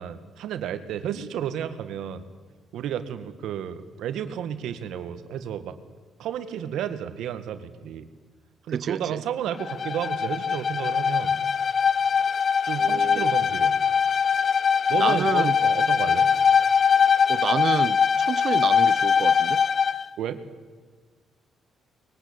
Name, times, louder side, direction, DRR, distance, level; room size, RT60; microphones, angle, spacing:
voice 1, 0.0-2.2 2.7-5.8 6.2-8.1 8.7-11.4 12.6-13.8 14.9-16.3 20.2-20.4, right 9 dB, 80° right, 1.9 m, -32 dB
voice 2, 8.7-9.2 12.8-13.3 15.0-15.5 17.3-19.6, right 7 dB, 55° right, 0.8 m, -29 dB
Bowed string instrument, 9.5-20.0, left 7 dB, 45° left, 0.7 m, -22 dB
24.0 x 21.5 x 8.9 m
cardioid pair, 90°, 0 cm